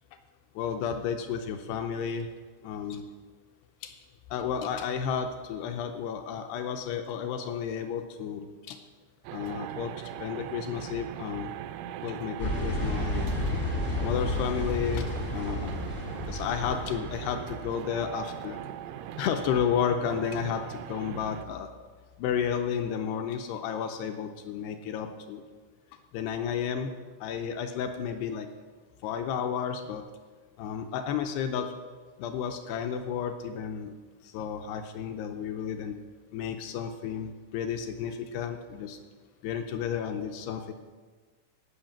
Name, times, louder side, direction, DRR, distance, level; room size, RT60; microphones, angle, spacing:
voice 1, 0.6-2.3 2.6-3.1 3.8-4.0 4.3-8.8 9.3-11.5 12.0-13.3 14.0-15.8 16.2-18.6 19.2-21.7 22.2-25.4 26.1-26.9 27.2-28.5 29.0-30.0 30.6-31.7 32.2-33.9 34.2-36.0 36.3-39.0 39.4-40.7, left 7 dB, 85° left, 6 dB, 2.4 m, -32 dB
sound 1, 9.2-21.5, right 11 dB, 85° right, 2.9 m, -40 dB
sound 2, 12.4-17.5, left 1 dB, 65° left, 0.7 m, -31 dB
16.5 x 5.7 x 7.3 m, 1.4 s
omnidirectional pair, 5.4 m